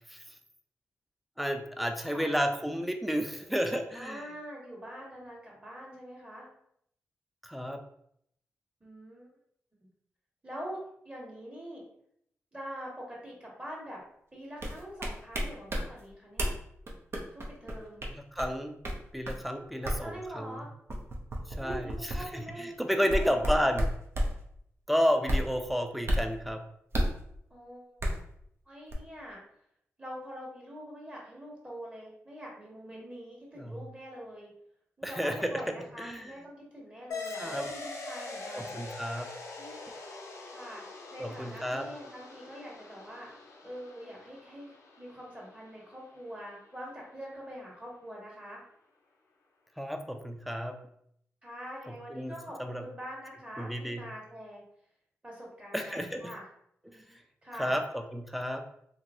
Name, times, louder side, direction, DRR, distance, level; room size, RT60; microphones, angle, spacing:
voice 1, 1.4-4.2 7.4-7.8 18.1-18.8 19.1-20.6 21.6-23.9 24.9-26.6 33.6-33.8 35.0-36.3 37.4-37.6 38.5-39.3 41.2-41.9 49.8-50.8 51.9-52.8 53.6-54.0 55.7-56.3 56.9-57.0 57.6-58.6, equal, ahead, 6 dB, 0.5 m, -32 dB
voice 2, 3.9-6.5 8.8-9.3 10.4-11.8 12.5-14.0 14.3-16.5 17.3-18.0 19.5-20.7 21.5-23.7 27.5-28.0 28.6-29.4 30.0-34.5 35.0-38.8 39.6-39.8 40.5-40.8 41.1-43.3 43.6-48.6 51.4-54.6 55.2-56.4 56.8-57.0 57.4-57.8, equal, 25° right, -3 dB, 1.5 m, -44 dB
sound 1, 14.6-15.8 16.4-16.6 16.9-18.5 18.8-18.9 19.3-19.4 19.8-20.0 20.9-22.2 23.0-24.3 25.2-25.5 26.1-26.3 26.9-27.2 28.0-28.2 28.9-29.0, equal, 55° right, 0.7 m, -30 dB
sound 2, 37.1-46.1, left 3 dB, 85° left, 0.6 m, -43 dB
2.9 x 2.7 x 2.6 m, 0.71 s
cardioid pair, 50°, 5 cm